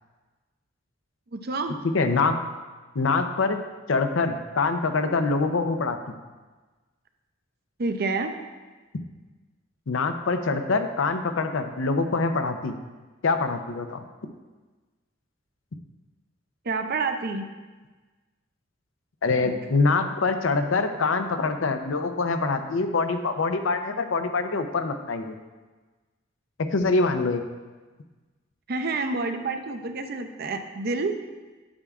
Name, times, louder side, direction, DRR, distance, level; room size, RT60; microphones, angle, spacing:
voice 1, 1.3-1.8 7.8-8.3 16.6-17.4 19.4-19.7 28.7-31.2, right 3 dB, 50° right, 6 dB, 0.6 m, -28 dB
voice 2, 1.9-2.4 3.0-3.6 3.9-6.0 9.9-12.7 13.2-14.0 19.2-25.3 26.7-27.4, left 3 dB, 80° left, 7 dB, 0.6 m, -24 dB
8.7 x 8.2 x 2.4 m, 1.3 s
head